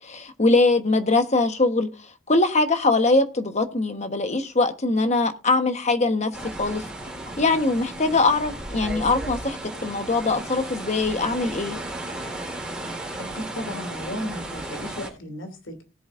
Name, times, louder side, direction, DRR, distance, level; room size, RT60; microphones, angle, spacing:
voice 1, 0.0-1.9 2.3-6.3 6.6-6.8 7.4-11.8, left 3 dB, 35° left, 1.2 m, -22 dB
sound 1, 6.3-15.1, right 1 dB, 5° right, 3.8 m, -34 dB
voice 2, 13.2-15.9, left 1 dB, 70° left, 2.9 m, -34 dB
19.0 x 8.0 x 2.6 m
head